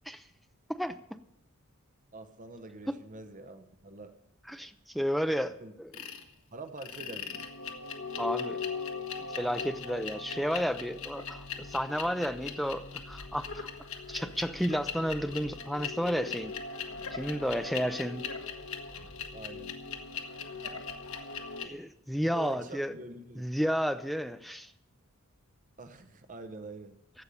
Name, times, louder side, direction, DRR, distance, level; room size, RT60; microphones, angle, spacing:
voice 1, 2.1-4.1 5.6-5.7 6.5-7.4 19.3-19.7 22.2-23.4 25.8-27.0, right 2 dB, 35° right, 9 dB, 0.9 m, -45 dB
voice 2, 4.5-5.9 8.2-8.6 9.3-13.7 14.1-16.5 17.1-18.3 21.6-22.9 23.4-24.7, equal, ahead, 9 dB, 0.5 m, -32 dB
sound 1, 5.9-6.2 6.8-21.7, left 5 dB, 65° left, 1.4 m, -39 dB
15.5 x 5.4 x 9.9 m, 0.76 s
head